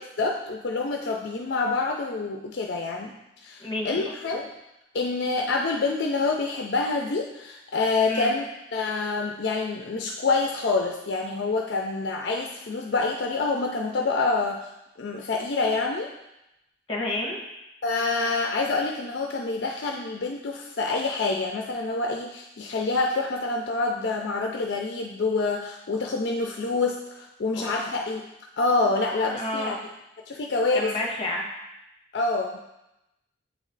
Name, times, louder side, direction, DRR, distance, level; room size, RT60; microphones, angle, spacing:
voice 1, 0.2-3.1 3.4-4.5 4.9-8.4 8.7-14.7 15.0-16.1 17.8-28.2 28.6-29.8 30.3-30.9 32.1-32.6, left 3 dB, 55° left, 1 dB, 0.4 m, -27 dB
voice 2, 3.6-4.1 8.1-8.3 16.9-17.4 27.5-27.8 29.3-29.7 30.7-31.5, left 1 dB, 25° left, -1 dB, 1.0 m, -30 dB
7.9 x 3.1 x 3.9 m, 0.90 s
head